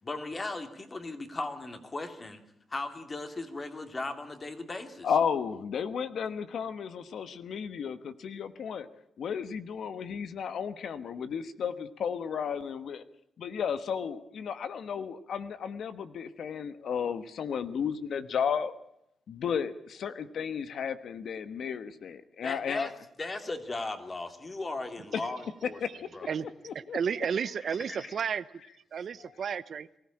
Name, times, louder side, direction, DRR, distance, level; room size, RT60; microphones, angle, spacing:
voice 1, 0.0-2.4 2.7-5.1 22.4-22.9 23.2-25.8 26.1-26.3 27.4-28.1, left 2 dB, 30° left, 7 dB, 2.8 m, -37 dB
voice 2, 5.0-8.9 9.2-13.0 13.4-18.7 19.3-22.9 25.1-25.2 25.8-25.9 26.6-27.0 29.2-29.3, left 7 dB, 75° left, 12 dB, 1.2 m, -33 dB
voice 3, 26.9-28.4 28.9-29.9, right 7 dB, 60° right, 15 dB, 0.9 m, -32 dB
23.0 x 15.5 x 8.8 m, 0.78 s
cardioid pair, 100°, 0 cm